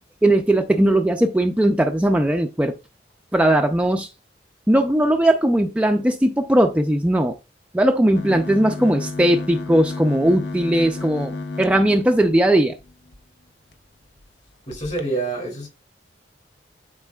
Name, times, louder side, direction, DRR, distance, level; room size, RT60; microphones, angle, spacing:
voice 1, 0.2-2.8 3.3-4.1 4.7-7.4 7.7-12.8, right 1 dB, 5° right, 0.4 m, -18 dB
sound 1, 8.1-13.2 13.7-13.8 14.1-14.3 14.7-15.0, left 3 dB, 75° left, 0.8 m, -33 dB
voice 2, 14.7-15.7, right 2 dB, 40° left, 2.5 m, -26 dB
10.5 x 4.5 x 2.3 m
head